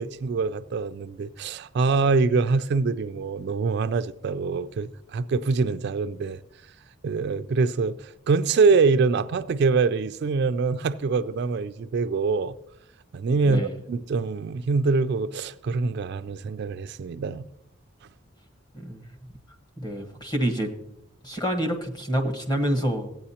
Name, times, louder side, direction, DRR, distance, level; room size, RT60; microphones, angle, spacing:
voice 1, 0.0-6.4 7.0-12.5 13.1-17.5, right 4 dB, 55° right, 0.3 m, -24 dB
voice 2, 13.4-13.7 18.7-19.0 19.8-20.7 21.2-23.1, equal, 20° left, 1.3 m, -27 dB
15.5 x 9.1 x 2.8 m
head